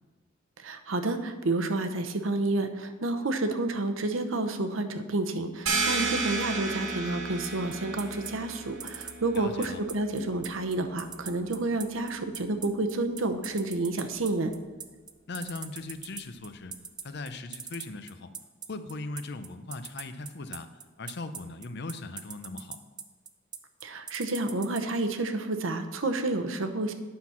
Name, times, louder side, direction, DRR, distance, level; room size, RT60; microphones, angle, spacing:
voice 1, 0.6-14.5 23.8-26.9, right 2 dB, 75° right, 7 dB, 0.9 m, -30 dB
sound 1, 5.7-11.0, right 3 dB, 90° right, 2.0 m, -33 dB
sound 2, 7.4-24.8, right 7 dB, 20° right, 0.5 m, -40 dB
voice 2, 9.3-9.8 15.3-16.7 17.0-18.3 18.7-20.7 21.0-22.8, left 3 dB, 55° left, 10 dB, 0.6 m, -39 dB
9.5 x 6.1 x 5.8 m, 1.4 s
head